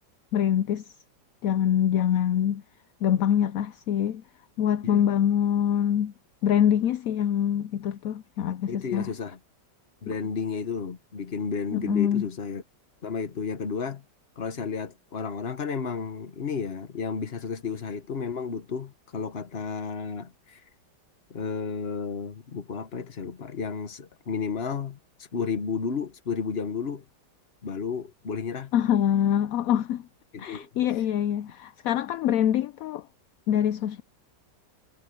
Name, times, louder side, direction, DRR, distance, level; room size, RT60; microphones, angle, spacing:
voice 1, 0.3-0.9 1.4-2.6 3.0-4.2 4.6-6.1 6.4-9.1 10.1-10.2 11.7-12.3 28.7-30.1 30.4-33.1 33.5-34.0, left 10 dB, 65° left, 0.9 m, -24 dB
voice 2, 8.7-9.4 10.0-12.6 13.0-14.0 14.4-20.6 21.3-25.0 25.3-27.0 27.6-28.7 30.3-30.7, left 5 dB, 40° left, 1.4 m, -32 dB
omnidirectional pair, 1.9 m